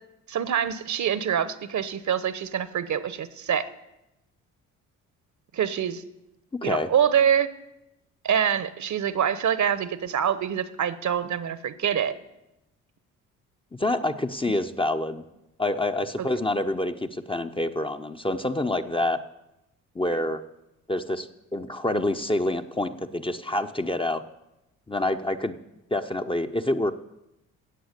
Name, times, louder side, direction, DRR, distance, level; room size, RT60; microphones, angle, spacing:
voice 1, 0.3-3.6 5.5-6.0 6.6-7.5 8.2-12.1 16.2-16.3, right 9 dB, 45° right, 15 dB, 1.1 m, -25 dB
voice 2, 13.7-15.2 15.6-19.2 19.9-20.4 20.9-21.3 21.5-24.2 24.9-25.6 25.9-26.9, left 1 dB, 15° left, 7 dB, 0.8 m, -27 dB
16.5 x 7.9 x 6.7 m, 0.92 s
hypercardioid pair, 45°, 40 cm